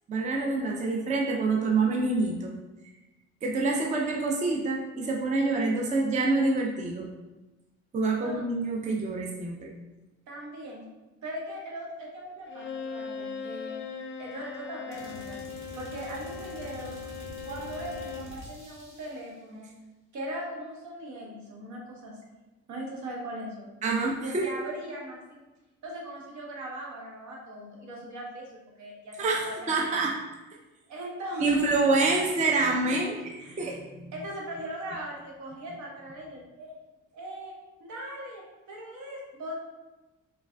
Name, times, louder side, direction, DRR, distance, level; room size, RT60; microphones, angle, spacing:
voice 1, 0.1-2.5 3.4-7.1 7.9-9.7 23.8-24.6 29.2-30.2 31.4-33.1 33.6-34.1, right 3 dB, 25° right, 0 dB, 0.4 m, -26 dB
voice 2, 10.3-10.9 11.2-13.7 14.2-15.4 15.7-17.0 17.4-19.7 20.1-22.2 22.7-23.7 24.2-25.4 25.8-29.2 29.4-30.0 30.9-31.8 32.9-33.7 34.1-36.8 37.1-37.5 37.8-39.5, right 1 dB, 70° right, -2 dB, 1.0 m, -39 dB
Bowed string instrument, 12.5-18.4, left 6 dB, 40° left, 0.4 m, -39 dB
sound 1, 14.9-19.4, right 1 dB, 45° right, 0.9 m, -46 dB
3.4 x 3.3 x 2.2 m, 1.1 s
cardioid pair, 90°, 30 cm